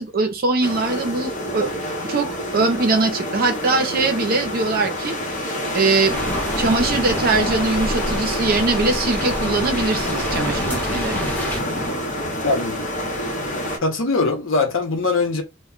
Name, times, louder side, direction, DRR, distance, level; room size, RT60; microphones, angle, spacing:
voice 1, 0.0-1.7 2.0-5.2 5.7-6.2 6.6-11.2, right 3 dB, 50° right, 0.6 m, -21 dB
sound 1, 0.6-13.8, equal, 40° left, 0.8 m, -27 dB
sound 2, 6.1-11.6, equal, 10° left, 0.9 m, -28 dB
voice 2, 12.4-12.8 13.8-15.4, left 3 dB, 80° left, 0.7 m, -21 dB
2.2 x 2.2 x 3.7 m
head